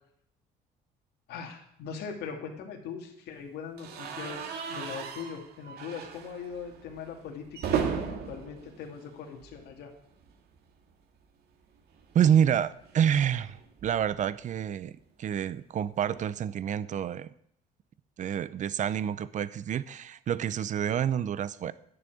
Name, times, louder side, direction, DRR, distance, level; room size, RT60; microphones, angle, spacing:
voice 1, 1.3-9.9, left 6 dB, 75° left, 2 dB, 2.5 m, -41 dB
sound 1, 3.8-9.8 10.1-10.3 10.6-10.7 11.9-14.3, right 7 dB, 70° right, 2.1 m, -37 dB
voice 2, 12.1-17.3 18.2-21.7, right 9 dB, 45° right, 17 dB, 0.7 m, -28 dB
11.0 x 6.7 x 9.2 m, 0.71 s
cardioid pair, 110°, 17 cm